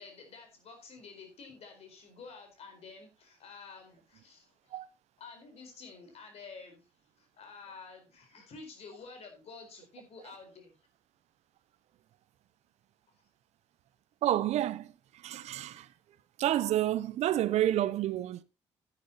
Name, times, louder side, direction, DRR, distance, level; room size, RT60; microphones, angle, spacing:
voice 1, 0.0-4.8 5.2-6.8 7.2-10.7, left 4 dB, 65° left, 4.4 m, -50 dB
voice 2, 14.2-14.9 15.2-15.9 16.4-18.4, right 13 dB, 70° right, 0.7 m, -29 dB
12.0 x 10.5 x 2.9 m
hypercardioid pair, 50°, 12 cm